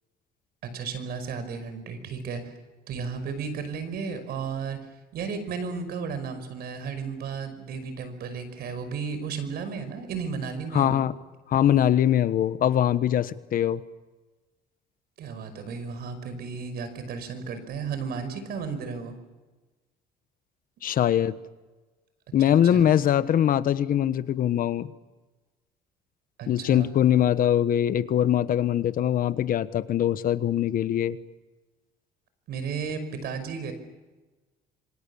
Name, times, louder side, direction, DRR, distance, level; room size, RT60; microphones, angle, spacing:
voice 1, 0.6-2.5 2.9-4.8 5.1-11.0 15.2-19.1 22.5-22.9 26.4-26.9 32.5-33.7, right 5 dB, 65° right, 10 dB, 5.5 m, -34 dB
voice 2, 10.7-11.1 11.5-13.8 20.8-21.4 22.3-24.9 26.5-31.2, left 10 dB, 55° left, 14 dB, 1.3 m, -22 dB
27.0 x 25.0 x 7.1 m, 1.2 s
cardioid pair, 110°, 17 cm